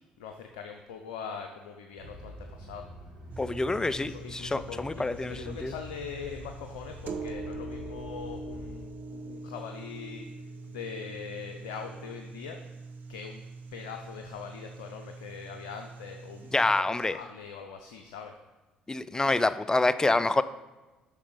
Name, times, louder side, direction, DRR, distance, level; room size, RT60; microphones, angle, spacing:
voice 1, 0.2-2.9 3.9-10.3 10.7-12.6 13.1-13.4 13.7-18.3, left 6 dB, 80° left, 5 dB, 0.6 m, -42 dB
sound 1, 2.0-8.8, equal, 75° right, 1.6 m, -46 dB
sound 2, 3.3-16.8, right 3 dB, 55° right, 0.8 m, -43 dB
voice 2, 3.4-5.7 16.5-17.2 18.9-20.4, left 2 dB, 20° left, 15 dB, 0.5 m, -27 dB
8.3 x 6.0 x 4.8 m, 1.2 s
hypercardioid pair, 55°, 4 cm